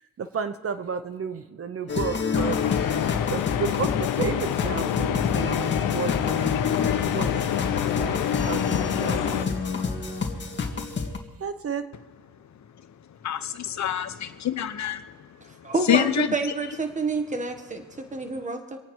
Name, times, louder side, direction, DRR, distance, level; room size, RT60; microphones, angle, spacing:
voice 1, 0.2-2.6 3.3-6.6 7.1-7.3 8.0-9.5 11.4-11.8, right 6 dB, 45° right, 10 dB, 1.0 m, -32 dB
sound 1, 1.9-11.2, left 5 dB, 35° left, 2.0 m, -29 dB
sound 2, 2.3-9.5, left 11 dB, 80° left, 0.8 m, -27 dB
voice 2, 13.2-15.0 15.9-16.3, left 10 dB, 60° left, 9 dB, 1.1 m, -25 dB
voice 3, 15.4-18.8, right 3 dB, 25° right, 6 dB, 1.6 m, -29 dB
25.5 x 9.0 x 4.7 m, 1.3 s
cardioid pair, 115°, 32 cm